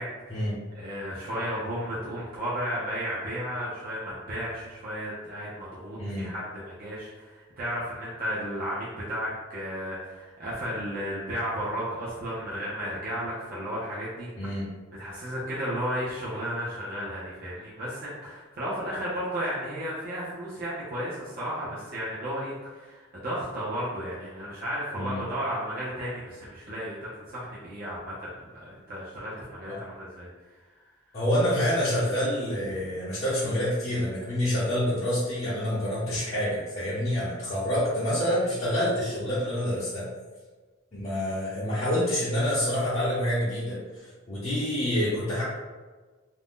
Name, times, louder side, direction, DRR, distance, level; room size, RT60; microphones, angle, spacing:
voice 1, 0.0-0.5 0.7-14.5 14.9-30.6 32.6-32.9, equal, 50° right, -8 dB, 0.5 m, -34 dB
voice 2, 6.0-6.3 14.4-14.7 24.9-25.2 31.1-40.0 40.9-43.8 44.3-45.4, equal, 35° left, -10 dB, 0.6 m, -27 dB
2.5 x 2.0 x 3.5 m, 1.3 s
head